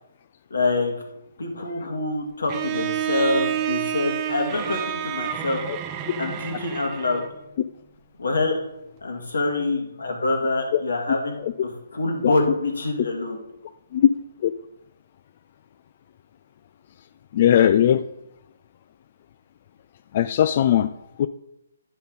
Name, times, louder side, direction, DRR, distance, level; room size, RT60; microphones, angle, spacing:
voice 1, 0.5-0.9 1.4-5.6 6.2-7.3 8.2-8.6 9.0-11.4 11.6-13.4, left 2 dB, 85° left, 2 dB, 2.1 m, -25 dB
Bowed string instrument, 2.5-7.4, right 10 dB, 25° right, 0.6 m, -29 dB
voice 2, 17.3-18.0 20.1-20.9 21.2-21.3, left 10 dB, 45° left, 11 dB, 0.3 m, -18 dB
10.5 x 5.5 x 4.0 m, 0.86 s
hypercardioid pair, 155°, 0 cm